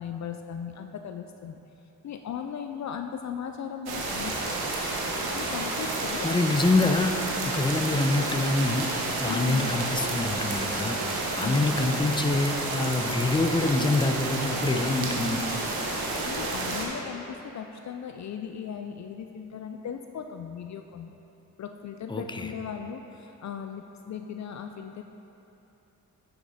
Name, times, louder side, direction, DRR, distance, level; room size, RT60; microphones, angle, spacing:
voice 1, 0.0-1.6 2.0-4.7 5.3-6.3 6.8-7.0 9.3-9.7 11.4-11.8 16.2-21.1 21.6-25.0, left 7 dB, 50° left, 6 dB, 0.5 m, -37 dB
sound 1, 3.9-16.9, right 2 dB, 85° right, 1.2 m, -30 dB
voice 2, 6.2-7.1 7.4-8.9 9.2-15.6 22.1-22.5, left 2 dB, 15° left, 5 dB, 0.7 m, -26 dB
9.5 x 5.9 x 4.1 m, 2.9 s
supercardioid pair, 50°, 36 cm